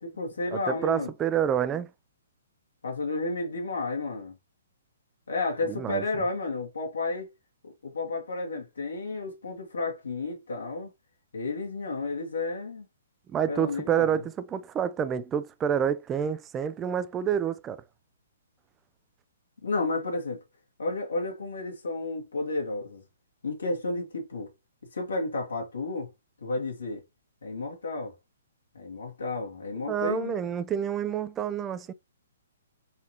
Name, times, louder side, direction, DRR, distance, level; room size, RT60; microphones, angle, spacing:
voice 1, 0.0-1.1 2.8-4.4 5.3-7.3 7.6-10.9 11.3-12.9 13.5-14.2 19.6-20.4 20.8-23.0 23.4-24.5 24.9-26.1 26.4-27.0 27.4-28.1 28.7-30.3, left 3 dB, 75° left, 1.8 m, -32 dB
voice 2, 0.5-1.9 5.7-6.0 13.3-17.8 29.9-31.9, right 8 dB, 20° right, 0.4 m, -28 dB
4.2 x 4.0 x 3.0 m
figure-of-eight pair, 125°, 0 cm